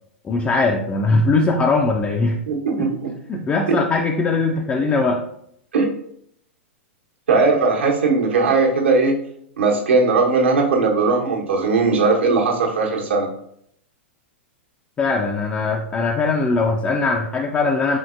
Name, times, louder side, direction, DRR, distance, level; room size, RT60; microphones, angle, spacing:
voice 1, 0.2-2.4 2.8-2.9 3.3-5.2 15.0-18.0, left 3 dB, 15° left, 0 dB, 0.3 m, -20 dB
voice 2, 2.5-3.1 5.7-5.9 7.3-9.2 9.6-13.3, right 4 dB, 65° right, -1 dB, 1.0 m, -18 dB
4.4 x 4.0 x 2.5 m, 0.70 s
figure-of-eight pair, 100°, 7 cm